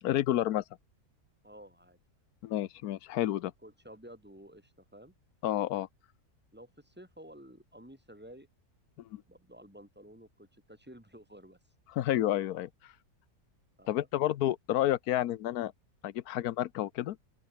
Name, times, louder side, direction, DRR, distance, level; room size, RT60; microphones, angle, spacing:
voice 1, 0.0-0.6 2.4-3.5 5.4-5.9 9.1-9.2 11.9-12.9 13.9-15.7 16.0-17.2, left 13 dB, 80° left, 1.2 m, -30 dB
voice 2, 1.4-2.0 3.4-5.1 6.5-8.5 9.3-11.6 13.8-14.1, right 1 dB, 5° right, 7.7 m, -52 dB
open air
omnidirectional pair, 1.6 m